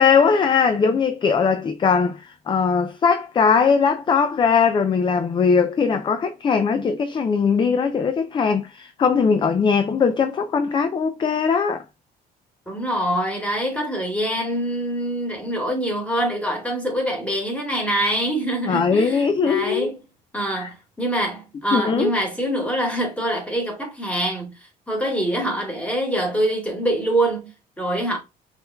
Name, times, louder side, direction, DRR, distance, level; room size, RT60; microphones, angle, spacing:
voice 1, 0.0-11.8 18.7-19.9 20.6-20.7 21.7-22.1, left 5 dB, 30° left, 0.4 m, -20 dB
voice 2, 12.7-20.0 20.3-24.5 24.9-28.2, right 1 dB, 10° left, 1.8 m, -25 dB
5.1 x 3.2 x 2.2 m
cardioid pair, 110°, 17 cm